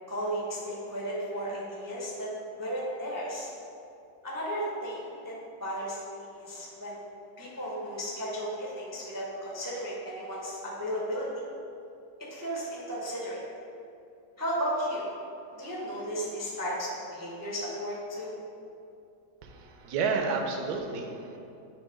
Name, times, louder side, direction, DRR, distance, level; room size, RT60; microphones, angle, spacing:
voice 1, 0.1-2.3 2.6-3.5 4.2-5.3 5.6-7.0 7.4-11.3 12.3-13.4 14.4-15.1 15.6-18.3, equal, 20° right, -5 dB, 0.5 m, -34 dB
voice 2, 19.4-21.4, right 4 dB, 75° right, 3 dB, 1.1 m, -31 dB
7.1 x 2.9 x 5.0 m, 2.7 s
omnidirectional pair, 1.8 m